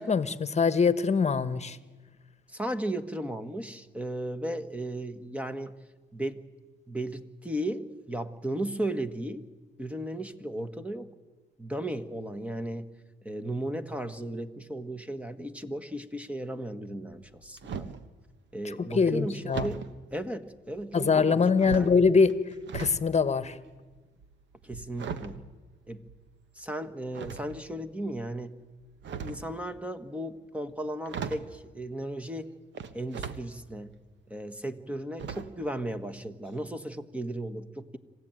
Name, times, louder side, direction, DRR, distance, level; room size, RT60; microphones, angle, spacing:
voice 1, 0.0-1.8 18.6-19.7 20.9-22.3 22.7-23.6, left 5 dB, 35° left, 14 dB, 1.3 m, -23 dB
voice 2, 2.5-5.7 6.1-6.4 6.9-9.5 9.8-11.1 11.6-13.0 13.2-17.9 18.5-22.0 24.6-25.4 25.9-26.1 26.5-28.5 29.2-32.6 32.9-34.0 34.3-38.0, right 1 dB, 5° right, 9 dB, 1.5 m, -35 dB
sound 1, 17.1-18.1 19.5-19.9 20.8-21.2 21.6-23.0 23.3-26.4 27.1-27.9 28.8-29.5 30.7-30.8 31.1-31.6 32.7-33.4 33.9-34.0 35.2-35.7 36.0-36.1 36.5-36.6, right 6 dB, 65° right, 1.4 m, -38 dB
26.5 x 15.5 x 9.1 m, 1.3 s
cardioid pair, 90°, 20 cm